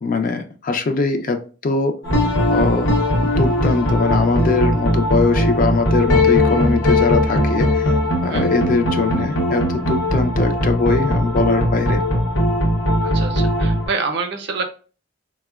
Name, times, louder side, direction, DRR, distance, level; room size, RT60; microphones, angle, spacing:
voice 1, 0.0-2.0 2.5-7.9 8.2-12.0, left 4 dB, 45° left, 7 dB, 0.4 m, -21 dB
sound 1, 2.0-13.9, left 1 dB, 70° left, 0.7 m, -19 dB
voice 2, 13.0-14.6, right 4 dB, 60° right, 5 dB, 0.5 m, -26 dB
3.6 x 2.1 x 2.2 m, 0.36 s
head